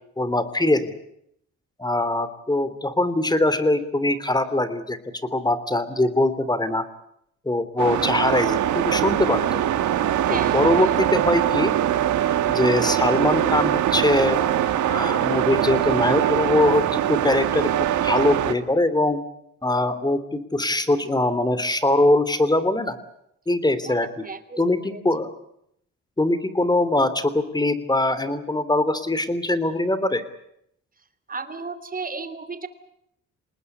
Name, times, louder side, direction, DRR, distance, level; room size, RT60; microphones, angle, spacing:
voice 1, 0.2-0.9 1.8-5.0 5.3-6.8 7.4-9.6 10.3-11.8 12.5-14.4 14.9-19.2 19.6-23.0 23.5-24.1 24.6-25.3 26.2-30.2, left 2 dB, 15° left, 13 dB, 3.1 m, -22 dB
sound 1, 7.8-18.5, right 11 dB, 75° right, 2.0 m, -22 dB
voice 2, 10.2-10.9 23.8-23.9 24.2-25.0 31.3-32.7, right 4 dB, 30° right, 13 dB, 3.2 m, -34 dB
27.5 x 20.0 x 8.1 m, 0.73 s
cardioid pair, 90°, 30 cm